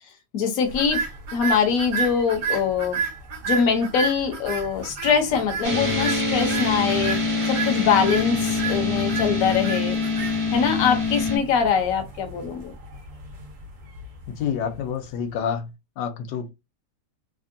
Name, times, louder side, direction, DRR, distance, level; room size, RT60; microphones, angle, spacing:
voice 1, 0.3-1.0 1.3-3.0 3.5-7.2 7.4-10.0 10.5-12.7, left 6 dB, 60° left, 1.1 m, -23 dB
sound 1, 0.7-15.0, right 5 dB, 55° right, 1.2 m, -33 dB
sound 2, 5.6-11.4, left 3 dB, 30° right, 0.7 m, -24 dB
voice 2, 14.3-15.7 16.0-16.5, left 7 dB, 85° left, 1.3 m, -28 dB
3.4 x 2.2 x 2.6 m
omnidirectional pair, 1.8 m